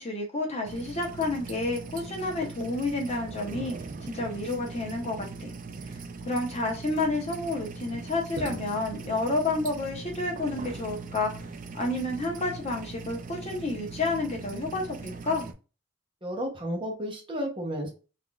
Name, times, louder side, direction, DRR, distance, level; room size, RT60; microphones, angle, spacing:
voice 1, 0.0-3.7 4.0-5.5 6.3-11.3 11.7-15.5, left 2 dB, 30° left, 1 dB, 0.8 m, -30 dB
sound 1, 0.7-15.5, right 4 dB, 40° right, 0.4 m, -40 dB
voice 2, 16.2-17.9, equal, 25° right, 0 dB, 0.8 m, -32 dB
3.5 x 2.5 x 2.3 m, 0.33 s
head